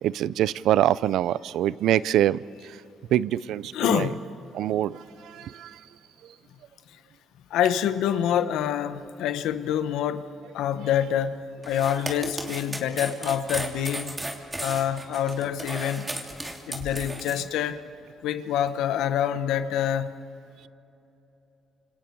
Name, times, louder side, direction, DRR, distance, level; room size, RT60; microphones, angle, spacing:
voice 1, 0.0-2.8 3.1-4.1 4.5-5.8, right 12 dB, 80° right, 0.4 m, -25 dB
voice 2, 3.7-4.2 7.5-10.3 10.5-14.1 14.6-16.1 16.7-17.8 18.2-20.1, left 10 dB, 90° left, 1.0 m, -26 dB
sound 1, 11.6-17.4, right 1 dB, 15° right, 3.0 m, -34 dB
29.5 x 27.0 x 4.6 m
cardioid pair, 90°, 0 cm